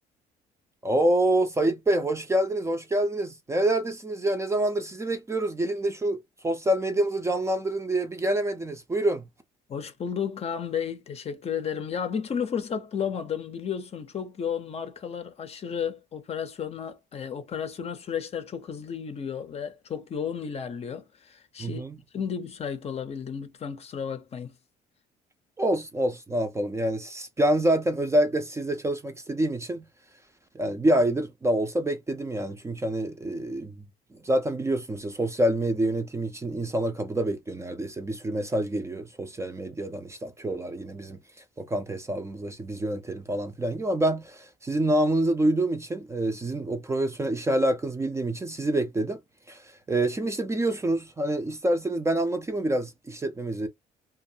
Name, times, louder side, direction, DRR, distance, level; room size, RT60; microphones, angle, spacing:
voice 1, 0.8-6.2 6.4-9.2 21.6-22.0 25.6-29.8 30.5-33.8 34.2-41.2 41.6-49.2 49.5-49.6 49.9-53.7, right 1 dB, 15° right, 0.5 m, -27 dB
voice 2, 9.7-21.8 22.1-24.5, left 7 dB, 35° left, 0.6 m, -33 dB
2.6 x 2.3 x 2.7 m
cardioid pair, 110°, 17 cm